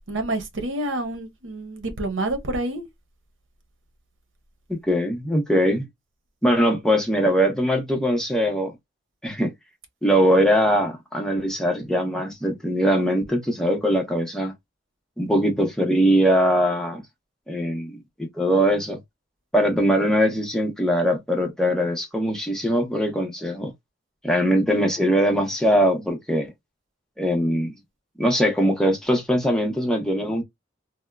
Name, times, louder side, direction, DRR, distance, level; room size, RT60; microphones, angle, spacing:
voice 1, 0.1-2.9, right 2 dB, 80° right, 0.9 m, -28 dB
voice 2, 4.7-5.9 6.4-8.7 9.2-9.5 10.0-14.5 15.2-17.0 17.5-19.0 19.5-23.7 24.2-26.5 27.2-27.7 28.2-30.4, equal, 5° left, 0.8 m, -21 dB
3.5 x 2.1 x 2.2 m
head